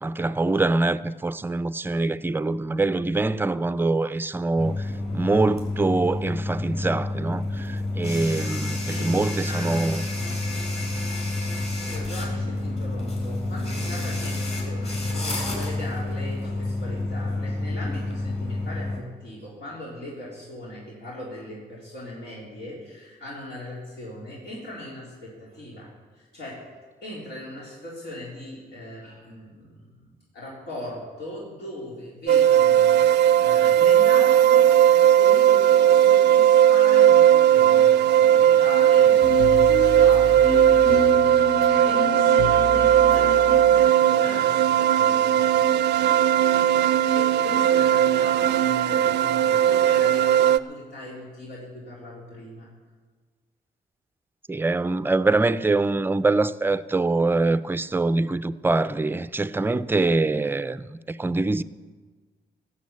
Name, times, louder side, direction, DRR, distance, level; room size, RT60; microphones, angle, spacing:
voice 1, 0.0-10.0 54.5-61.6, right 3 dB, 10° right, 0.4 m, -24 dB
sound 1, 4.6-19.0, left 2 dB, 35° left, 4.8 m, -29 dB
voice 2, 8.9-10.0 11.9-26.7 27.0-34.8 35.1-45.7 47.1-52.7, left 1 dB, 85° left, 4.0 m, -39 dB
sound 2, 32.3-50.6, right 10 dB, 90° right, 0.5 m, -18 dB
sound 3, 39.2-43.9, left 6 dB, 55° left, 0.6 m, -30 dB
17.0 x 6.9 x 8.5 m
cardioid pair, 105°, 17 cm